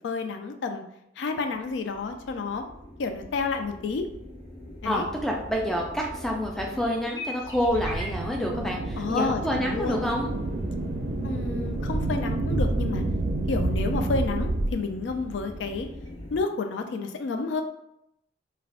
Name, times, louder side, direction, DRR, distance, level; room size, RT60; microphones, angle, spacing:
voice 1, 0.0-0.8 1.2-2.6 3.0-4.1 4.8-5.1 9.0-10.1 11.2-13.0 13.5-15.9 16.3-17.6, left 4 dB, 85° left, 6 dB, 0.3 m, -30 dB
sound 1, 1.5-16.4, left 1 dB, 20° left, 1.0 m, -42 dB
voice 2, 4.8-10.3, equal, ahead, -1 dB, 0.3 m, -28 dB
sound 2, 7.5-14.7, right 2 dB, 85° right, 0.4 m, -29 dB
2.4 x 2.2 x 3.4 m, 0.80 s
head